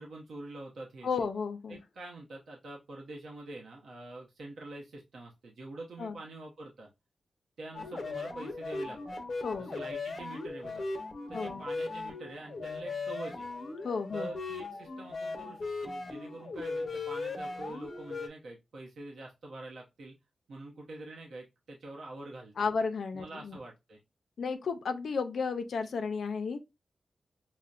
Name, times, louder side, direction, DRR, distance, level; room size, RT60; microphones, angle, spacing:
voice 1, 0.0-1.1 1.7-6.9 7.6-9.2 9.6-10.9 11.3-13.5 14.1-20.1 20.5-22.7 23.1-24.0, right 2 dB, 85° right, 0.8 m, -45 dB
voice 2, 1.0-1.8 6.0-6.2 9.4-9.7 11.3-11.6 13.8-14.3 22.6-23.6 24.4-26.6, left 5 dB, 80° left, 0.4 m, -33 dB
sound 1, 7.7-18.3, left 3 dB, 55° left, 0.8 m, -38 dB
5.5 x 2.1 x 2.4 m
wide cardioid pair, 95°, 0 cm